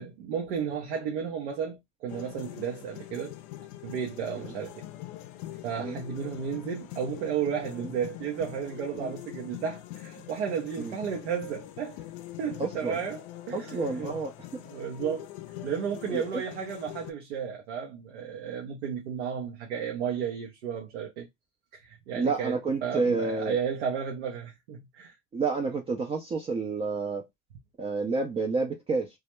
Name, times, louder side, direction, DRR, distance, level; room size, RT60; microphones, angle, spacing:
voice 1, 0.0-3.3 3.8-4.8 5.6-12.0 12.4-14.2 14.5-15.3 15.6-21.3 21.7-25.1, right 7 dB, 85° right, 0.7 m, -33 dB
sound 1, 2.1-17.1, left 14 dB, 65° left, 0.5 m, -43 dB
voice 2, 12.6-13.0 13.5-14.3 16.1-16.4 22.2-23.6 25.3-27.2 27.8-29.1, right 4 dB, 20° right, 0.4 m, -29 dB
2.3 x 2.1 x 2.9 m
supercardioid pair, 105°, 34 cm